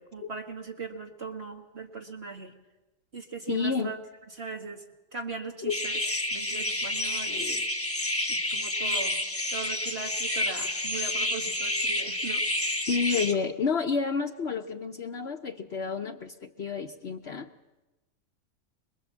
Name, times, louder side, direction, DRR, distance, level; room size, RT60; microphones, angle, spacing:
voice 1, 0.0-2.5 3.1-4.0 4.4-4.8 5.1-6.0 6.3-7.7 8.3-9.2 9.5-12.4, right 4 dB, 50° right, 1 dB, 2.0 m, -39 dB
voice 2, 3.5-4.0 5.6-5.7 12.9-17.5, left 5 dB, 55° left, 4 dB, 1.2 m, -30 dB
sound 1, 5.7-13.3, left 1 dB, 10° left, 1.3 m, -29 dB
26.5 x 21.0 x 7.5 m, 1.0 s
omnidirectional pair, 1.4 m